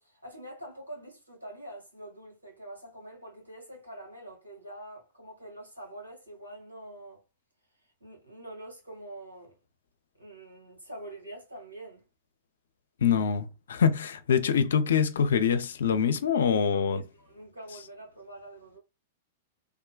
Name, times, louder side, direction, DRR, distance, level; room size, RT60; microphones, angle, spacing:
voice 1, 0.0-7.2 8.0-9.6 10.2-12.0 16.6-18.8, right 1 dB, 90° right, 1.5 m, -45 dB
voice 2, 13.0-17.0, left 7 dB, 70° left, 0.5 m, -25 dB
3.5 x 2.2 x 2.2 m
figure-of-eight pair, 100°, 0 cm